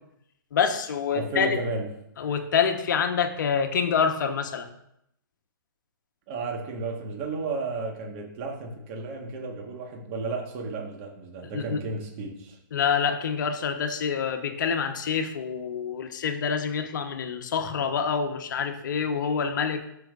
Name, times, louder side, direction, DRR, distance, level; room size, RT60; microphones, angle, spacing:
voice 1, 0.5-1.5 2.2-4.7 11.5-11.8 12.7-19.9, left 6 dB, 60° left, 6 dB, 1.2 m, -26 dB
voice 2, 1.1-1.9 6.3-12.6, right 3 dB, 35° right, 1 dB, 1.5 m, -33 dB
14.0 x 5.8 x 2.6 m, 0.77 s
hypercardioid pair, 140°, 12 cm